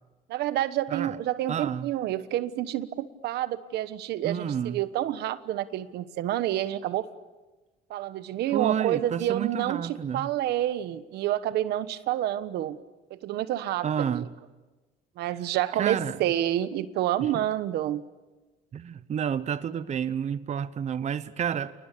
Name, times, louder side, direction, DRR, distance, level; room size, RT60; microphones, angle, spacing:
voice 1, 0.3-7.1 7.9-12.8 13.1-14.2 15.2-18.0, right 12 dB, 80° right, 1.3 m, -28 dB
voice 2, 1.5-1.9 4.2-4.8 8.5-10.3 13.8-14.3 15.8-16.2 17.2-17.5 18.7-21.7, right 8 dB, 40° right, 0.9 m, -30 dB
29.0 x 20.0 x 8.5 m
cardioid pair, 110°, 17 cm